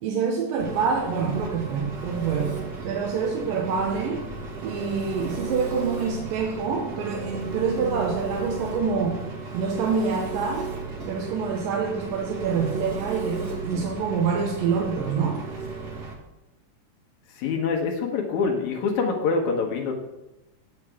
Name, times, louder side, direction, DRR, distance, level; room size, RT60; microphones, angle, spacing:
voice 1, 0.0-2.6 2.8-4.2 4.6-9.3 9.5-10.7 11.1-15.5, right 5 dB, 90° right, -1 dB, 2.8 m, -26 dB
Engine, 0.6-16.1, right 3 dB, 45° right, 1.3 m, -34 dB
voice 2, 17.3-19.9, left 4 dB, 70° left, 1 dB, 2.5 m, -25 dB
8.8 x 8.0 x 4.9 m, 0.97 s
omnidirectional pair, 3.8 m